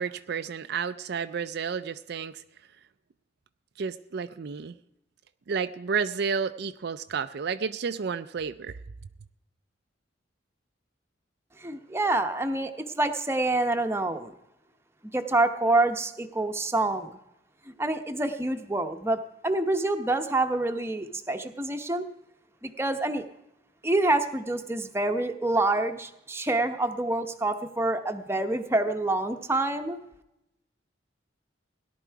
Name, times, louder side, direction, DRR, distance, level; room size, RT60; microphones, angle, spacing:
voice 1, 0.0-2.4 3.8-4.7 5.5-8.8, right 6 dB, 60° right, 10 dB, 0.4 m, -31 dB
voice 2, 11.6-12.7 13.0-14.3 15.1-17.1 17.8-22.1 22.6-23.2 23.8-30.0, right 2 dB, 15° right, 6 dB, 0.9 m, -27 dB
17.5 x 11.5 x 4.6 m, 0.86 s
head